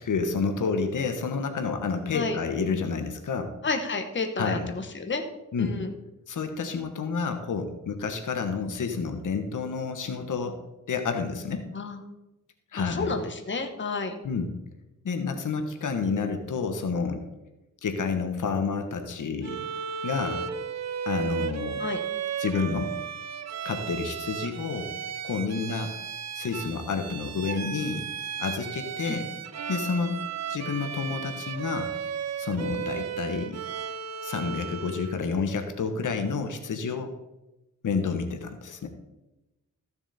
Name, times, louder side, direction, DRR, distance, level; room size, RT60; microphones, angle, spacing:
voice 1, 0.0-3.5 4.4-4.7 5.5-5.8 6.3-10.6 10.9-11.6 12.7-13.2 14.2-14.5 15.0-17.2 17.8-19.7 20.0-20.4 21.1-21.8 22.4-22.9 23.6-24.9 25.2-25.9 26.3-28.0 28.4-29.3 29.7-30.2 30.5-31.9 32.4-33.6 34.2-37.1 37.8-38.9, left 5 dB, 70° left, 6 dB, 1.3 m, -29 dB
voice 2, 3.6-5.2 5.6-5.9 11.7-12.0 12.8-14.1 21.8-22.0 29.1-29.2, left 3 dB, 35° left, 5 dB, 1.3 m, -31 dB
Bowed string instrument, 19.4-35.2, right 7 dB, 55° right, 0.7 m, -35 dB
14.5 x 7.0 x 4.2 m, 1.0 s
wide cardioid pair, 110°, 32 cm